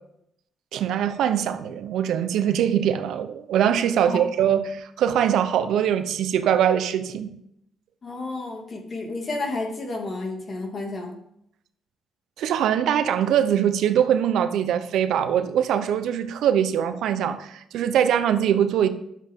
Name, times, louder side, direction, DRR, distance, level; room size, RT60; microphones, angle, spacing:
voice 1, 0.7-7.3 12.4-18.9, right 9 dB, 80° right, 0.8 m, -22 dB
voice 2, 8.0-11.1, left 2 dB, 45° left, 2.4 m, -31 dB
10.5 x 7.5 x 3.7 m
cardioid pair, 90°, 0 cm